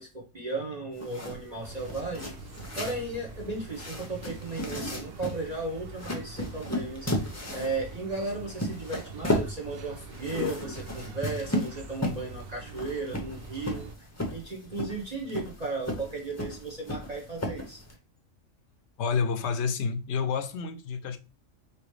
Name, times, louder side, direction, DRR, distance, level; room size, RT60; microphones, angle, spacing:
voice 1, 0.0-2.3 2.8-7.1 7.5-13.9 14.3-17.8, right 3 dB, 35° right, 1.0 m, -35 dB
sound 1, 0.9-17.9, left 1 dB, 15° left, 0.6 m, -35 dB
sound 2, 1.6-14.0, right 4 dB, 60° right, 0.7 m, -45 dB
voice 2, 19.0-21.2, left 5 dB, 65° left, 0.9 m, -29 dB
4.9 x 2.9 x 3.2 m
omnidirectional pair, 1.3 m